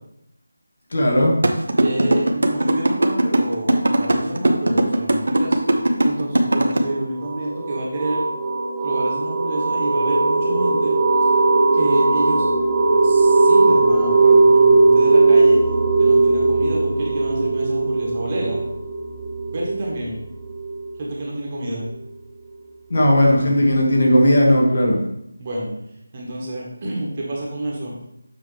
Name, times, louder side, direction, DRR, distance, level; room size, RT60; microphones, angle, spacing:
voice 1, 0.9-1.3 22.9-25.0, equal, 50° left, -1 dB, 1.7 m, -16 dB
sound 1, 1.4-6.8, right 1 dB, 70° right, 0.8 m, -17 dB
voice 2, 1.8-8.2 8.8-11.0 11.7-12.5 13.0-15.6 16.0-18.6 19.5-20.2 21.0-21.8 25.4-25.7 26.1-27.9, right 1 dB, 25° right, -3 dB, 1.3 m, -28 dB
sound 2, 6.8-21.2, right 3 dB, 5° right, 0.8 m, -18 dB
7.4 x 4.9 x 3.3 m, 0.77 s
figure-of-eight pair, 175°, 0 cm